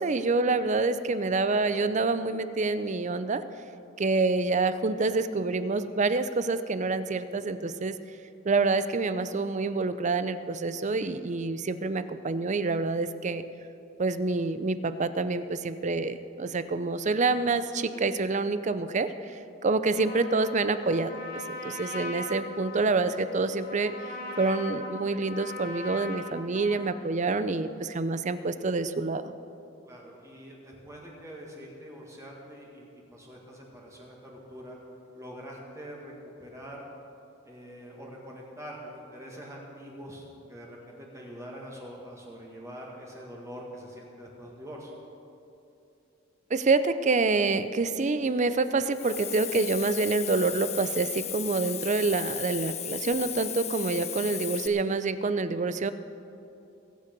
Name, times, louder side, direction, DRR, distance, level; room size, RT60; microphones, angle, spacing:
voice 1, 0.0-3.4 4.0-8.0 8.5-13.4 14.0-19.1 19.6-23.9 24.4-29.2 46.5-55.9, right 3 dB, 35° right, 12 dB, 0.5 m, -27 dB
Trumpet, 19.9-27.0, left 2 dB, 50° left, 1.9 m, -40 dB
voice 2, 29.8-34.8 35.1-36.1 36.4-36.9 37.4-44.9, equal, 15° right, -2 dB, 1.8 m, -44 dB
Hiss, 48.9-54.7, left 9 dB, 35° left, 0.8 m, -36 dB
21.5 x 8.3 x 5.3 m, 2.7 s
head